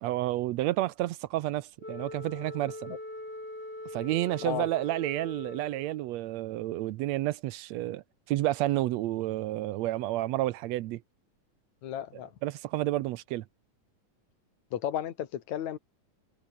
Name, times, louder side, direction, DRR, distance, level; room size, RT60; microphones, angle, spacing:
voice 1, 0.0-3.0 3.9-11.0 12.4-13.4, right 15 dB, 75° right, 1.7 m, -30 dB
Wind instrument woodwind instrument, 1.8-6.2, left 1 dB, 15° left, 7.2 m, -42 dB
voice 2, 11.8-12.3 14.7-15.8, left 10 dB, 70° left, 2.9 m, -33 dB
omnidirectional pair, 3.5 m